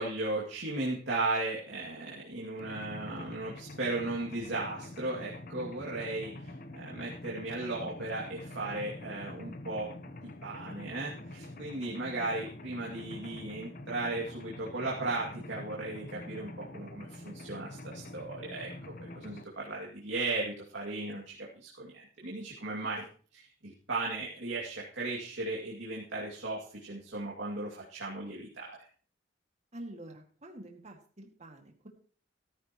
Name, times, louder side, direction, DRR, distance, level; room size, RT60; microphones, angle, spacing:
voice 1, 0.0-9.9 10.2-18.7 19.0-23.0 23.3-28.9, right 2 dB, 80° right, -4 dB, 2.5 m, -36 dB
Mechanisms, 2.6-19.4, left 1 dB, 50° left, 0.9 m, -45 dB
voice 2, 29.7-31.9, right 1 dB, 40° right, 2 dB, 2.1 m, -47 dB
13.5 x 13.5 x 3.0 m, 0.41 s
head